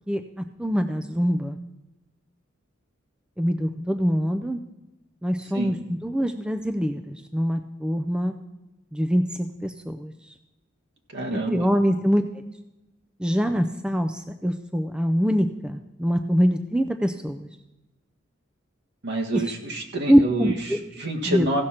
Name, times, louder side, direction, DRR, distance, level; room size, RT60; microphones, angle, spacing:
voice 1, 0.6-1.6 3.4-4.6 5.2-8.3 8.9-10.3 11.3-12.4 13.2-17.5 19.3-19.4 20.1-20.8 21.3-21.5, equal, 5° right, 6 dB, 0.4 m, -24 dB
voice 2, 11.1-11.7 19.0-21.6, right 1 dB, 60° right, 1 dB, 1.7 m, -28 dB
15.5 x 6.4 x 4.3 m, 0.99 s
head